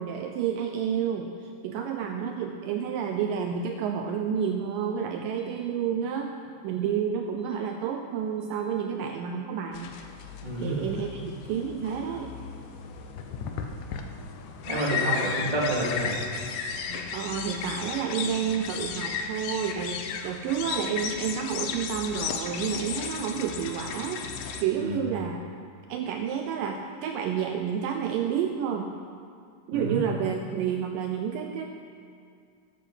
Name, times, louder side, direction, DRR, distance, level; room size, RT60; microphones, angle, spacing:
voice 1, 0.0-6.3 6.6-9.9 10.6-12.4 16.9-25.4 25.9-28.9 29.7-31.7, right 7 dB, 80° right, 4 dB, 2.1 m, -30 dB
sound 1, 9.7-24.6, left 6 dB, 75° left, 1.8 m, -35 dB
voice 2, 10.4-10.8 13.4-13.5 14.6-16.1 24.8-25.0 29.7-30.0, right 1 dB, 15° right, -5 dB, 1.7 m, -29 dB
13.5 x 9.5 x 5.6 m, 2.3 s
omnidirectional pair, 4.3 m